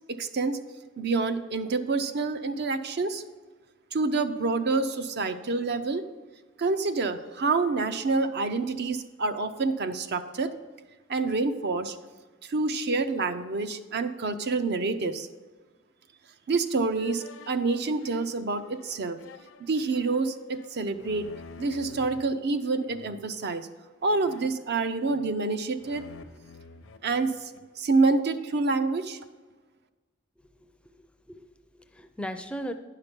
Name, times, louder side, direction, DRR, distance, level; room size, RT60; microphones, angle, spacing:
voice 1, 0.2-0.6 1.0-3.2 3.9-6.0 6.6-10.5 11.1-12.0 12.4-15.3 16.5-19.2 19.6-21.3 21.6-23.7 24.0-26.1 27.0-27.5 27.8-29.2, right 3 dB, 55° right, 10 dB, 0.5 m, -27 dB
sound 1, 17.0-22.2 22.9-23.4 24.0-25.5 25.8-27.8, left 4 dB, 75° left, 0.5 m, -50 dB
voice 2, 30.4-32.7, equal, 5° left, 8 dB, 0.4 m, -39 dB
9.8 x 5.8 x 5.2 m, 1.3 s
head